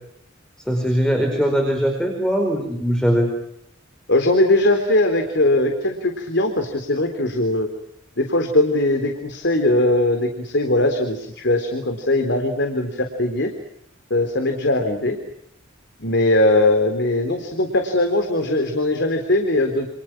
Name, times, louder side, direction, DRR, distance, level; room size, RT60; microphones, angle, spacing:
voice 1, 0.7-3.3, equal, 5° left, 4 dB, 4.9 m, -20 dB
voice 2, 4.1-7.7 8.2-13.5 14.1-15.2 16.0-19.9, left 1 dB, 60° left, 7 dB, 3.7 m, -20 dB
29.5 x 29.0 x 6.1 m, 0.74 s
head